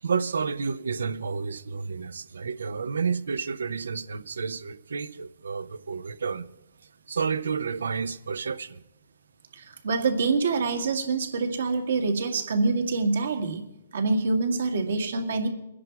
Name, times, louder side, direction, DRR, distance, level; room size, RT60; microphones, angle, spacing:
voice 1, 0.0-6.5 7.1-8.8, right 5 dB, 85° right, 0.7 m, -30 dB
voice 2, 9.5-13.6 13.9-15.5, right 3 dB, 65° right, 2.0 m, -26 dB
22.5 x 10.0 x 4.7 m
hypercardioid pair, 165°, 0 cm